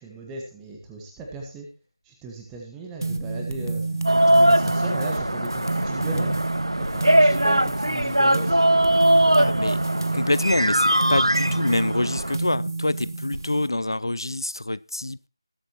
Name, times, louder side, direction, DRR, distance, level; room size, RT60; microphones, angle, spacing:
voice 1, 0.0-1.7 2.0-3.8 4.3-6.4 6.8-8.6, right 2 dB, 5° right, 1.4 m, -37 dB
sound 1, 3.0-13.7, right 3 dB, 55° right, 1.4 m, -29 dB
sound 2, 4.1-12.4, right 1 dB, 90° right, 0.5 m, -21 dB
voice 2, 9.3-9.8 10.1-15.3, left 2 dB, 60° left, 0.4 m, -26 dB
20.0 x 7.7 x 3.0 m
figure-of-eight pair, 165°, 2 cm